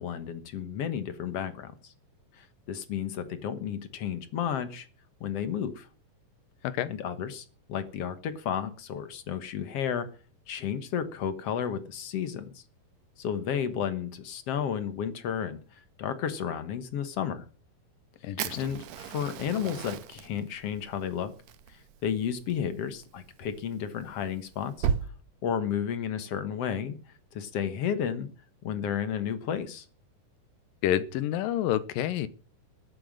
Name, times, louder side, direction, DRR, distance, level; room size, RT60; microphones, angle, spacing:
voice 1, 0.0-1.9 2.4-4.9 5.2-5.9 6.9-10.1 10.5-12.6 13.2-15.6 16.0-17.4 18.6-21.3 21.7-24.9 25.4-27.0 27.3-28.3 28.6-29.9, left 8 dB, 60° left, 11 dB, 1.9 m, -32 dB
voice 2, 18.2-18.6 30.8-32.3, left 11 dB, 90° left, 16 dB, 2.6 m, -28 dB
Fire, 18.4-25.0, right 8 dB, 70° right, 1.9 m, -37 dB
14.5 x 9.2 x 6.5 m, 0.40 s
omnidirectional pair, 3.9 m